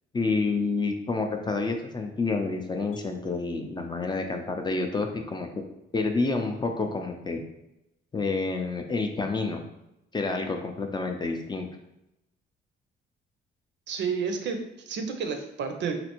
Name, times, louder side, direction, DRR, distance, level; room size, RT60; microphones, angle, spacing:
voice 1, 0.1-5.5 5.9-7.4 8.1-9.6 10.1-11.7, left 3 dB, 20° left, 4 dB, 0.4 m, -28 dB
Mallet percussion, 2.9-6.2, right 11 dB, 90° left, 0.9 m, -51 dB
voice 2, 13.9-16.0, right 5 dB, 65° right, 5 dB, 0.5 m, -31 dB
3.2 x 2.5 x 2.9 m, 0.88 s
cardioid pair, 90°, 20 cm